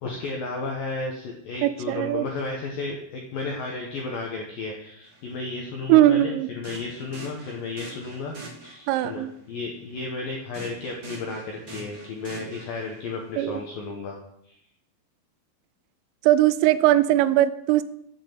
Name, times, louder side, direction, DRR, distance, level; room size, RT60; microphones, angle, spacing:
voice 1, 0.0-8.3 8.6-14.2 14.4-14.6, left 3 dB, 80° left, 0 dB, 2.0 m, -33 dB
voice 2, 1.6-2.3 5.9-6.5 8.9-9.3 13.4-13.6 16.2-17.8, right 14 dB, 85° right, 15 dB, 3.1 m, -20 dB
sound 1, 5.0-5.2 6.6-9.1 10.5-13.2, right 3 dB, 50° right, 1.5 m, -43 dB
8.5 x 5.4 x 7.5 m, 0.73 s
omnidirectional pair, 5.7 m